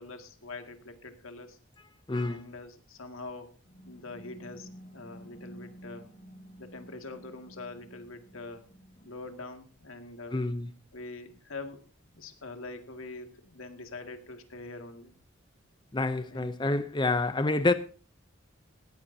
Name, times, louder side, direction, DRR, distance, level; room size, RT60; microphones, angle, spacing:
voice 1, 0.0-1.6 2.2-3.6 3.9-6.1 6.6-8.7 9.0-10.4 10.9-11.9 12.1-15.2 16.3-16.5, left 3 dB, 85° left, 2.1 m, -44 dB
voice 2, 2.1-2.5 10.3-10.7 15.9-17.7, left 2 dB, 20° left, 0.6 m, -28 dB
sound 1, 3.6-9.3, equal, 40° left, 1.8 m, -51 dB
18.5 x 14.5 x 2.7 m
head